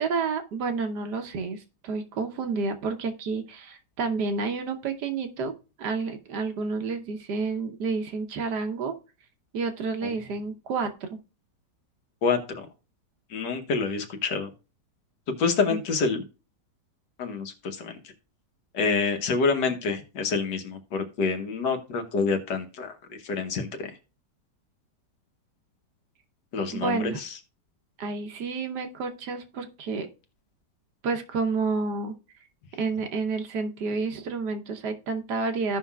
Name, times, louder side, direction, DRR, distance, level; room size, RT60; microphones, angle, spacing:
voice 1, 0.0-5.5 5.8-8.9 9.5-11.2 15.7-15.8 26.7-27.2 28.0-30.1 31.0-32.1 32.8-35.8, right 4 dB, 75° right, 6 dB, 1.5 m, -30 dB
voice 2, 12.2-12.7 13.3-14.5 15.3-16.2 17.2-18.0 18.7-23.9 26.5-27.3, left 4 dB, 75° left, 5 dB, 1.7 m, -27 dB
15.5 x 5.6 x 2.3 m, 0.33 s
omnidirectional pair, 1.9 m